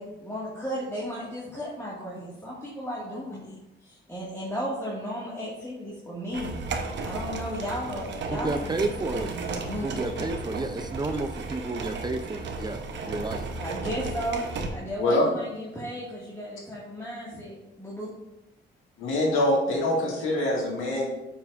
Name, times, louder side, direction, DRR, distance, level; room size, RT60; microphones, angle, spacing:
voice 1, 0.0-3.5 3.8-6.6 7.0-9.9 13.6-14.4 14.7-18.1, equal, 15° left, -7 dB, 2.0 m, -35 dB
sound 1, 6.3-14.7, right 3 dB, 65° right, 1.0 m, -34 dB
voice 2, 8.3-9.4 9.8-13.5, right 2 dB, 20° right, 8 dB, 0.5 m, -31 dB
voice 3, 19.0-21.1, left 1 dB, 85° left, -2 dB, 2.1 m, -24 dB
9.0 x 5.7 x 2.6 m, 0.93 s
cardioid pair, 90°, 20 cm